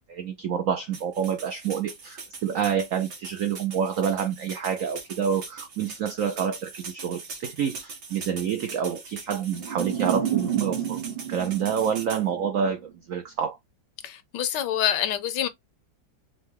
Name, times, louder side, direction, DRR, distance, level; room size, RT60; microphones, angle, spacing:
voice 1, 0.1-13.6, right 8 dB, 80° right, 0.7 m, -28 dB
sound 1, 0.9-12.2, right 4 dB, 65° right, 2.1 m, -42 dB
sound 2, 9.5-12.7, right 9 dB, 35° right, 0.5 m, -30 dB
voice 2, 14.0-15.5, left 10 dB, 75° left, 1.1 m, -26 dB
5.5 x 2.2 x 3.2 m
omnidirectional pair, 2.1 m